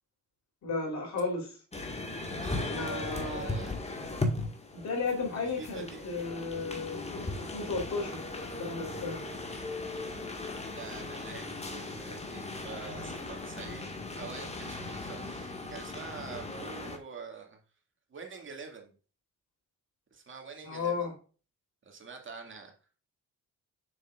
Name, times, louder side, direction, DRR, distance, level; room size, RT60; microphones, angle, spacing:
voice 1, 0.6-1.6 2.7-3.5 4.7-8.2 8.6-9.2 20.6-21.1, left 4 dB, 65° left, 0 dB, 3.5 m, -34 dB
sound 1, 1.7-17.0, left 2 dB, 20° left, 1.7 m, -38 dB
voice 2, 2.3-3.8 5.3-6.0 10.7-17.6 18.1-18.9 20.1-21.1 21.8-22.7, right 5 dB, 40° right, 3 dB, 2.1 m, -45 dB
7.0 x 6.7 x 2.4 m, 0.37 s
cardioid pair, 90°, 30 cm